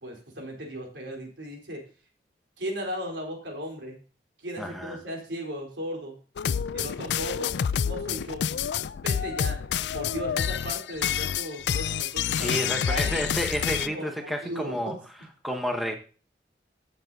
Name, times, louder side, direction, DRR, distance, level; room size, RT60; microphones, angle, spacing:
voice 1, 0.0-1.8 2.6-4.0 4.4-6.2 6.7-8.5 9.0-9.6 9.9-12.6 12.8-13.2 13.8-14.9, equal, 85° right, 3.8 m, -36 dB
voice 2, 4.6-5.0 12.4-15.0 15.4-15.9, equal, ahead, 1.0 m, -30 dB
sound 1, 6.4-13.9, left 8 dB, 75° left, 0.4 m, -28 dB
15.5 x 7.2 x 2.7 m
head